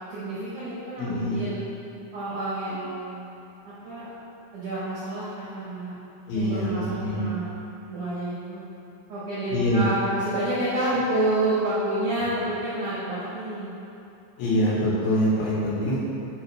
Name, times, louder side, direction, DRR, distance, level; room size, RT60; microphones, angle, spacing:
voice 1, 0.1-1.7 2.1-3.1 3.7-4.1 4.5-5.9 6.3-7.5 7.9-8.6 9.1-13.7, right 1 dB, 70° right, -11 dB, 1.9 m, -29 dB
voice 2, 1.0-1.4 6.3-7.3 9.5-9.9 14.4-16.0, equal, 80° left, -9 dB, 4.0 m, -24 dB
10.5 x 4.6 x 3.2 m, 2.8 s
omnidirectional pair, 5.4 m